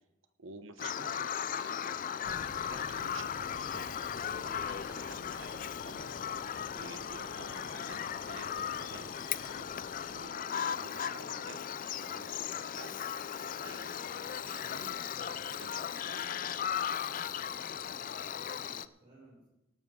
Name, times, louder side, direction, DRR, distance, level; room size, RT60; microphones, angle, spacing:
voice 1, 0.4-2.0 2.3-9.7 9.9-11.6 12.0-13.1 13.6-16.5, right 4 dB, 90° right, 10 dB, 1.0 m, -51 dB
Bird vocalization bird call bird song, 0.8-18.9, left 8 dB, 45° left, 0.4 m, -37 dB
sound 1, 2.2-10.3, left 4 dB, 65° left, 0.9 m, -50 dB
voice 2, 17.7-19.4, right 2 dB, 30° right, -8 dB, 6.1 m, -60 dB
18.0 x 12.5 x 3.7 m, 0.96 s
head